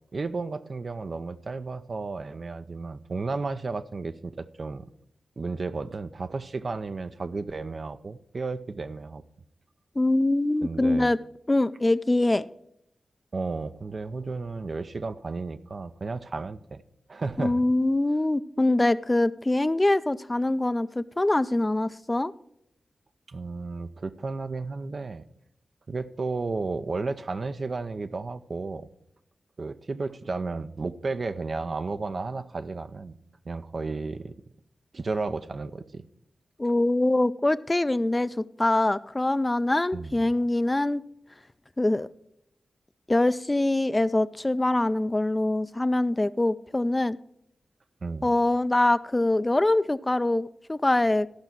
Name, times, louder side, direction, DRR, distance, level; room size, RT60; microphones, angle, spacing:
voice 1, 0.1-4.8 5.4-9.2 10.6-11.1 13.3-16.8 17.1-17.6 23.3-25.2 25.9-28.9 29.6-33.1 33.5-34.3 34.9-36.0 39.9-40.3 48.0-48.3, right 3 dB, 60° right, 11 dB, 0.6 m, -33 dB
voice 2, 10.0-11.2 11.5-12.5 17.4-22.3 36.6-41.0 41.8-42.1 43.1-47.2 48.2-51.3, left 2 dB, 25° left, 15 dB, 0.4 m, -24 dB
13.0 x 5.6 x 5.9 m, 0.74 s
cardioid pair, 40°, 0 cm